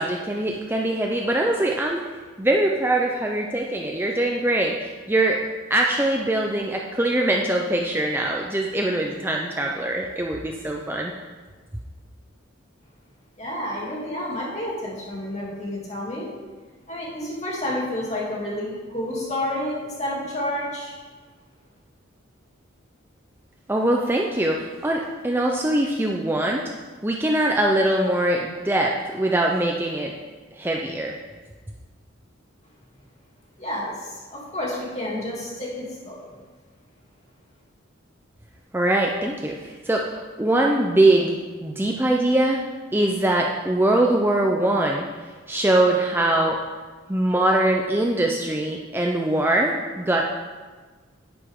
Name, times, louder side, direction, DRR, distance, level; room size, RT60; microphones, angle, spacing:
voice 1, 0.0-2.0 2.4-5.4 5.7-11.1 23.7-26.7 27.0-30.1 30.6-31.2 38.7-42.6 42.9-45.0 45.5-46.6 47.1-50.2, right 1 dB, 10° right, 0 dB, 0.5 m, -22 dB
voice 2, 13.4-16.3 16.9-20.9 33.6-36.3, left 1 dB, 35° left, -5 dB, 2.7 m, -30 dB
10.0 x 10.0 x 3.7 m, 1.4 s
head